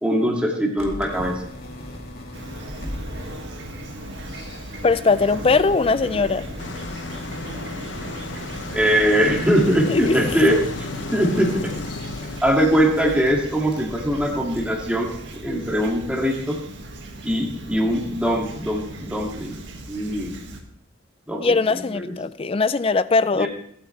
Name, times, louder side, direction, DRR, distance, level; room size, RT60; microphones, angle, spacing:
voice 1, 0.0-1.4 8.7-11.7 12.4-16.6 17.2-19.6 19.9-20.3 21.3-22.0 23.3-23.5, equal, 5° right, -1 dB, 2.3 m, -22 dB
sound 1, 0.8-18.0, left 1 dB, 50° left, 2.2 m, -39 dB
Fowl / Chirp tweet, 2.3-20.6, right 1 dB, 70° right, 1.9 m, -38 dB
voice 2, 4.8-6.5 9.9-10.2 21.4-23.5, left 4 dB, 30° left, 15 dB, 0.4 m, -20 dB
sound 2, 6.6-12.4, left 3 dB, 65° left, 0.9 m, -34 dB
24.5 x 8.7 x 3.3 m, 0.69 s
head